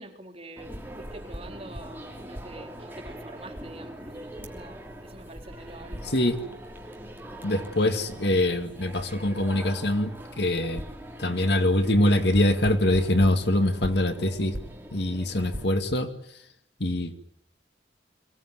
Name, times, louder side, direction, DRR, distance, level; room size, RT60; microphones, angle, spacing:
voice 1, 0.0-6.1, right 2 dB, 30° right, 2 dB, 3.9 m, -46 dB
sound 1, 0.6-15.6, equal, 10° right, 3.1 m, -41 dB
voice 2, 6.0-6.4 7.4-10.8 11.2-14.6 14.9-16.1 16.8-17.2, left 1 dB, 60° left, 8 dB, 2.2 m, -24 dB
23.5 x 18.5 x 9.6 m, 0.74 s
head